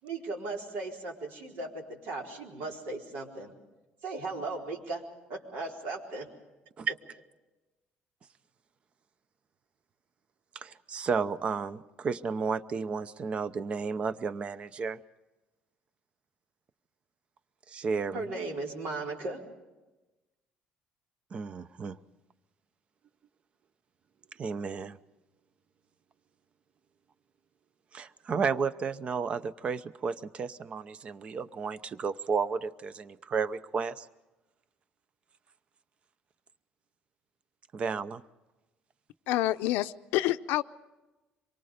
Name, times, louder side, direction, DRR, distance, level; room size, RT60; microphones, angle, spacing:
voice 1, 0.0-3.5 4.0-5.0 5.3-6.3 18.1-19.4, right 3 dB, 80° right, 0 dB, 4.3 m, -37 dB
voice 2, 10.5-15.0 17.7-18.2 21.3-22.0 24.4-25.0 27.9-34.1 37.7-38.2, right 5 dB, 35° right, 15 dB, 0.7 m, -32 dB
voice 3, 39.3-40.6, left 15 dB, 90° left, 12 dB, 0.6 m, -28 dB
26.5 x 23.5 x 5.1 m, 1.1 s
cardioid pair, 135°, 3 cm